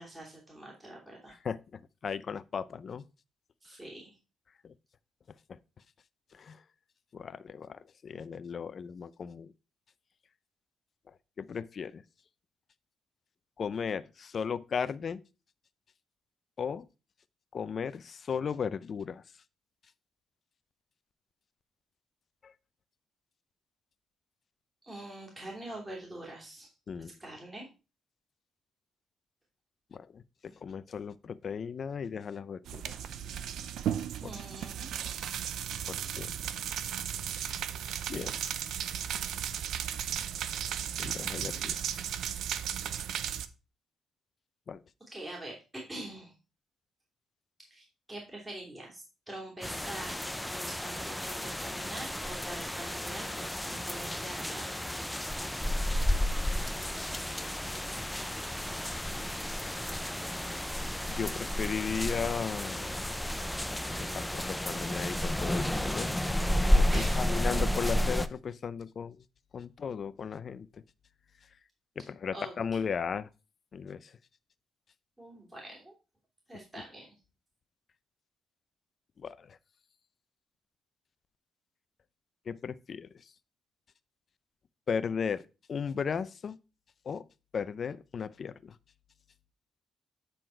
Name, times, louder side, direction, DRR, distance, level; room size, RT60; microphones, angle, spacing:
voice 1, 0.0-1.4 3.6-4.2 24.8-26.7 27.0-27.7 34.2-34.9 45.1-46.3 47.7-54.8 66.9-67.4 72.3-72.9 75.2-75.9 76.5-77.1, right 1 dB, 15° right, 3.0 m, -44 dB
voice 2, 1.4-3.0 4.6-4.7 6.3-6.6 7.1-9.5 11.4-12.0 13.6-15.2 16.6-16.9 17.5-19.2 22.4-22.5 26.9-27.1 29.9-32.9 34.2-34.4 35.9-36.4 37.3-37.5 38.1-38.4 41.0-41.8 44.7-44.8 58.8-58.9 61.1-62.9 63.7-66.2 66.5-69.2 69.5-70.7 72.0-73.3 73.7-74.1 79.2-79.6 82.5-83.1 84.9-85.4 85.7-86.6 87.1-87.2 87.5-88.8, left 6 dB, 50° left, 0.5 m, -36 dB
sound 1, 32.7-43.5, right 9 dB, 75° right, 0.6 m, -35 dB
sound 2, 49.6-68.3, equal, 5° left, 0.5 m, -31 dB
9.2 x 4.3 x 4.4 m
cardioid pair, 90°, 0 cm